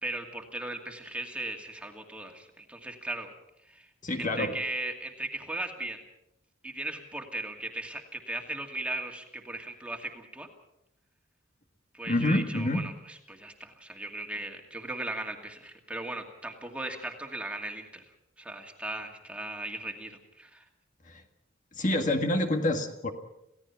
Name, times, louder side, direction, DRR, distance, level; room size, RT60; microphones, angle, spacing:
voice 1, 0.0-3.3 3.7-3.9 4.2-6.0 6.6-10.5 11.9-12.9 13.3-18.0 18.4-20.6, right 2 dB, 5° right, 2 dB, 2.3 m, -37 dB
voice 2, 4.0-4.5 12.1-12.8 21.1-21.2 21.7-23.1, left 1 dB, 40° left, 4 dB, 1.8 m, -27 dB
29.0 x 17.0 x 5.8 m, 0.83 s
head